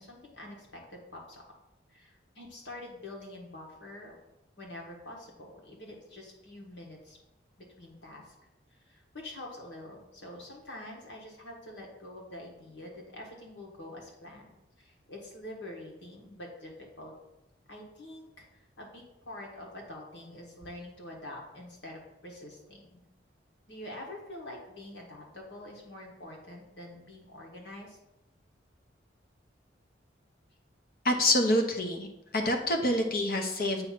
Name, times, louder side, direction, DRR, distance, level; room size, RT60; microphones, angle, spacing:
voice 1, 0.0-1.4 1.9-4.2 4.6-7.2 7.6-8.3 8.7-17.1 17.7-23.0 23.7-28.0, left 1 dB, 75° left, 0 dB, 1.8 m, -46 dB
voice 2, 31.0-32.1 32.3-33.9, left 1 dB, 50° left, 4 dB, 0.9 m, -26 dB
8.0 x 3.0 x 5.9 m, 0.90 s
head